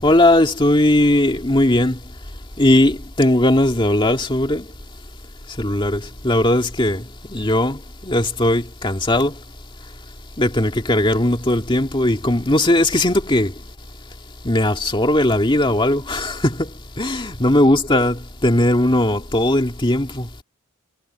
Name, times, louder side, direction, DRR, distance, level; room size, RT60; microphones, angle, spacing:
voice 1, 0.0-2.0 2.6-4.7 5.6-9.4 10.4-13.5 14.4-20.4, left 1 dB, 25° left, 2.2 m, -18 dB
head